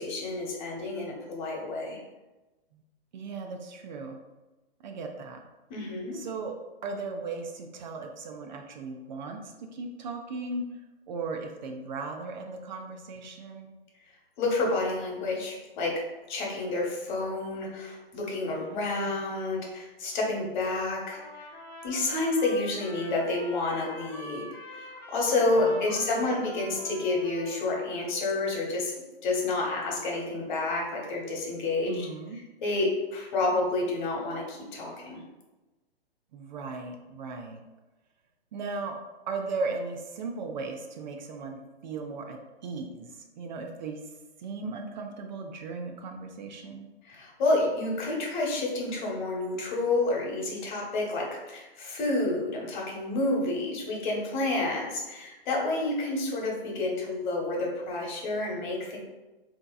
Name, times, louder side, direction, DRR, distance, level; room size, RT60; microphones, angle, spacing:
voice 1, 0.0-2.0 5.7-6.2 14.4-16.0 16.3-21.2 21.8-28.9 29.2-32.1 32.6-35.2 47.0-59.0, left 2 dB, 50° left, -1 dB, 1.1 m, -29 dB
voice 2, 3.1-4.2 4.8-5.4 6.1-6.5 6.8-10.8 11.1-13.7 18.5-18.8 25.6-26.4 31.9-32.4 36.3-37.6 38.5-39.0 39.3-44.0 44.4-46.9, right 3 dB, 50° right, 3 dB, 0.4 m, -37 dB
Trumpet, 21.1-27.8, left 1 dB, 15° left, 0.3 m, -45 dB
3.6 x 2.8 x 2.2 m, 1.1 s
hypercardioid pair, 130°, 31 cm